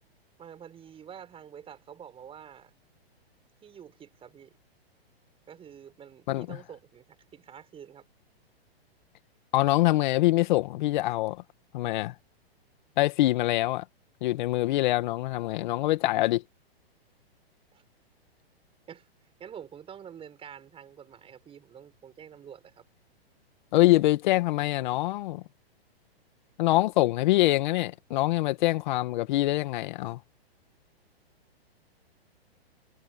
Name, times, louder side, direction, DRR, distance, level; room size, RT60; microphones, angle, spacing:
voice 1, 0.4-2.7 3.6-4.5 5.5-7.0 7.3-8.1 17.7-17.8 18.9-19.1 19.4-22.8, right 8 dB, 15° right, 7.3 m, -47 dB
voice 2, 9.5-11.4 11.7-12.1 13.0-13.8 14.2-16.4 23.7-25.4 26.6-30.2, left 17 dB, 45° left, 1.9 m, -24 dB
hypercardioid pair, 140°, 31 cm